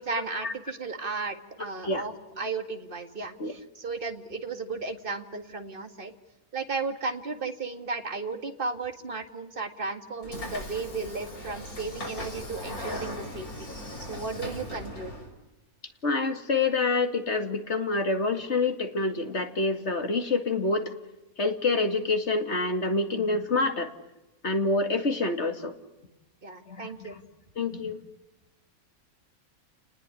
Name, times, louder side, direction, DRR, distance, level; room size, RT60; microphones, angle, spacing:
voice 1, 0.0-6.1 6.5-13.7 14.0-15.1 26.4-27.2, right 4 dB, 40° right, 7 dB, 2.2 m, -34 dB
Train / Sliding door, 10.2-15.3, left 1 dB, 90° left, 6.4 m, -38 dB
voice 2, 16.0-20.9 21.4-23.9 24.4-25.7 26.7-27.1 27.6-28.0, left 3 dB, 50° left, 7 dB, 2.5 m, -27 dB
30.0 x 20.0 x 9.8 m, 1.0 s
omnidirectional pair, 1.5 m